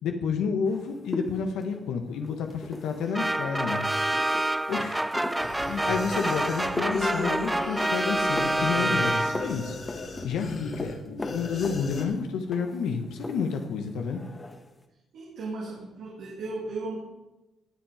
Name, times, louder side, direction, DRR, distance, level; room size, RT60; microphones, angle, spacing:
voice 1, 0.0-3.9 4.7-5.0 5.5-9.8 10.2-14.2, left 6 dB, 85° left, 5 dB, 1.3 m, -30 dB
sound 1, 0.6-13.7 14.0-14.7, left 2 dB, 25° left, 1.6 m, -40 dB
sound 2, 3.1-9.7, right 1 dB, 10° right, 0.3 m, -27 dB
sound 3, 5.4-12.1, left 3 dB, 50° left, 2.5 m, -36 dB
voice 2, 15.1-17.0, right 3 dB, 75° right, -3 dB, 2.6 m, -35 dB
18.5 x 6.4 x 5.0 m, 0.99 s
cardioid pair, 90°, 0 cm